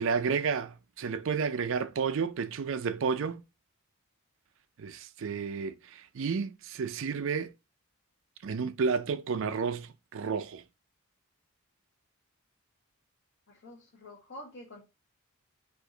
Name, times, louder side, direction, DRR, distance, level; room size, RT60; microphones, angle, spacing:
voice 1, 0.0-3.4 4.8-7.5 8.4-10.6, right 5 dB, 60° right, 0.4 m, -31 dB
voice 2, 13.5-14.8, left 1 dB, 60° left, 1.2 m, -47 dB
4.7 x 2.6 x 3.8 m
head